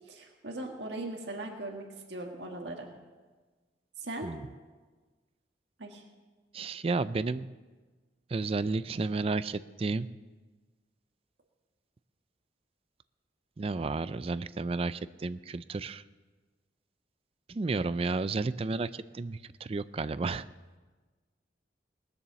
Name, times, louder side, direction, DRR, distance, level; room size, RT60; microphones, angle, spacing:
voice 1, 0.1-2.9 4.0-4.3 5.8-6.0, right 2 dB, 75° right, 1 dB, 1.7 m, -39 dB
voice 2, 6.5-7.5 8.3-10.1 13.6-16.0 17.5-20.4, right 3 dB, 30° right, 15 dB, 0.4 m, -32 dB
20.0 x 7.1 x 6.9 m, 1.3 s
head